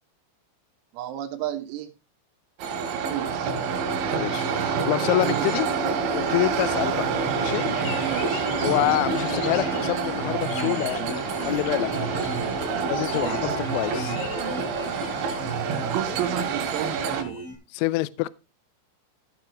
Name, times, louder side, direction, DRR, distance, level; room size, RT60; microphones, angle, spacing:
voice 1, 0.9-1.9 2.9-3.6 5.2-5.5 8.0-9.0 13.2-13.6 15.9-17.4, right 12 dB, 85° right, 4.2 m, -32 dB
sound 1, 2.6-17.2, right 5 dB, 70° right, 4.0 m, -27 dB
voice 2, 4.2-5.7 6.1-7.0 7.4-7.7 8.6-11.1 11.5-12.1 12.9-14.2 17.7-18.3, left 19 dB, 85° left, 2.8 m, -26 dB
sound 2, 7.1-15.4, left 8 dB, 65° left, 3.1 m, -40 dB
sound 3, 7.6-17.5, equal, 35° left, 2.5 m, -39 dB
15.0 x 6.9 x 2.9 m
omnidirectional pair, 6.0 m